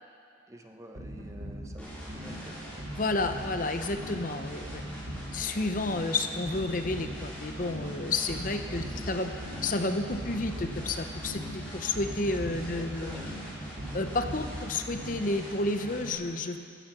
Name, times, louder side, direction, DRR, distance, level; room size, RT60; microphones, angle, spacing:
voice 1, 0.5-2.6 8.7-9.3 12.5-13.3, equal, 15° right, 4 dB, 0.9 m, -48 dB
sound 1, 1.0-15.6, equal, 85° right, 2.3 m, -41 dB
sound 2, 1.8-16.1, equal, 5° left, 5.4 m, -42 dB
voice 2, 3.0-4.8 5.3-9.3 9.6-13.2 13.9-16.6, left 2 dB, 45° left, 7 dB, 0.8 m, -31 dB
16.5 x 15.0 x 6.0 m, 2.3 s
head